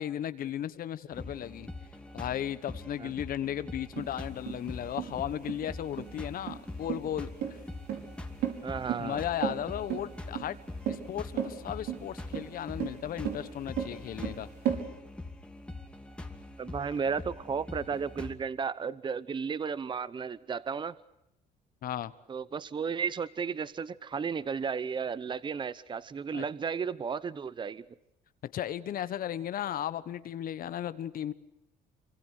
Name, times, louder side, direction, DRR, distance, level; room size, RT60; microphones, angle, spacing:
voice 1, 0.0-1.7 2.1-7.3 9.0-10.6 10.9-14.5 21.8-22.1 26.3-26.4 28.5-31.3, left 11 dB, 60° left, 14 dB, 1.3 m, -35 dB
sound 1, 1.1-18.3, left 2 dB, 5° left, 2.6 m, -44 dB
sound 2, 4.0-14.8, right 9 dB, 75° right, 5.5 m, -35 dB
voice 2, 8.6-9.2 16.6-20.9 22.3-27.8, right 6 dB, 30° right, 18 dB, 0.9 m, -34 dB
27.5 x 25.5 x 6.6 m, 0.87 s
cardioid pair, 110°, 17 cm